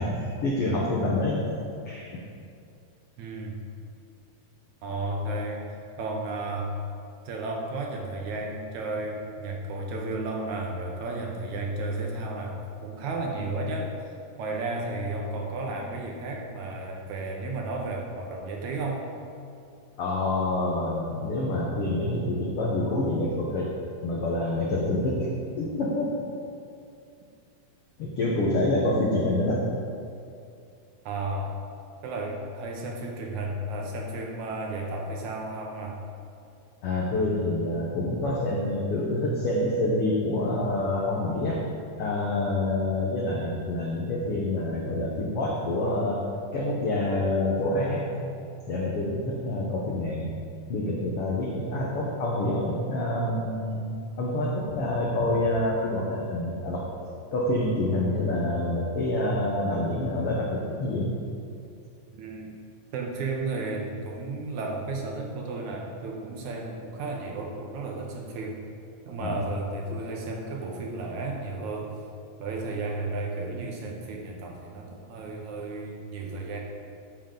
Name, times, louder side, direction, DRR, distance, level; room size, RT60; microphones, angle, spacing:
voice 1, 0.0-1.4 1.8-2.2 20.0-23.7 24.0-25.3 25.6-26.2 28.0-29.7 36.8-41.6 42.0-46.2 46.5-48.3 48.7-50.3 50.7-53.9 54.2-56.9 57.3-61.1 69.2-69.4, left 1 dB, 65° left, -3 dB, 1.4 m, -27 dB
voice 2, 3.2-3.6 4.8-5.7 6.0-6.8 7.3-14.0 14.4-19.1 31.1-31.5 32.0-36.0 62.1-62.5 62.9-68.6 69.1-72.0 72.4-76.6, right 2 dB, 70° right, 0 dB, 2.1 m, -33 dB
14.0 x 7.2 x 3.9 m, 2.5 s
omnidirectional pair, 4.0 m